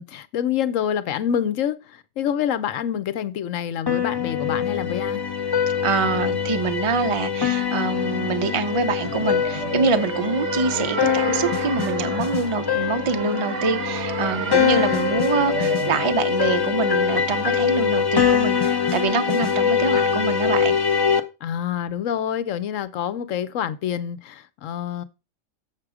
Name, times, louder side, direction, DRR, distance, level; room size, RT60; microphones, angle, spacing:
voice 1, 0.0-5.2 21.4-25.0, left 9 dB, 80° left, 1.1 m, -27 dB
sound 1, 3.9-21.2, left 7 dB, 35° left, 0.4 m, -23 dB
voice 2, 5.8-20.8, right 4 dB, 45° right, 0.4 m, -25 dB
sound 2, 9.0-16.1, right 9 dB, 70° right, 1.0 m, -32 dB
7.3 x 6.0 x 4.9 m
omnidirectional pair, 1.3 m